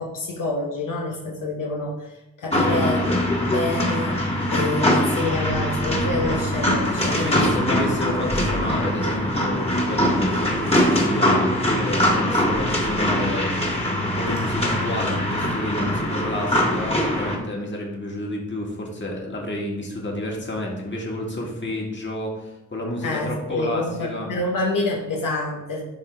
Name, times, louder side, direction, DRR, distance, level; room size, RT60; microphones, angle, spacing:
voice 1, 0.0-3.1 3.4-4.2 4.5-7.5 14.3-14.4 23.0-25.8, left 2 dB, 85° left, 0 dB, 0.9 m, -27 dB
voice 2, 2.5-2.9 7.0-13.5 13.9-24.4, left 1 dB, 35° left, -1 dB, 1.8 m, -30 dB
sound 1, 2.5-17.4, left 1 dB, 20° left, 1.6 m, -22 dB
10.5 x 3.7 x 3.3 m, 0.94 s
cardioid pair, 65°, 31 cm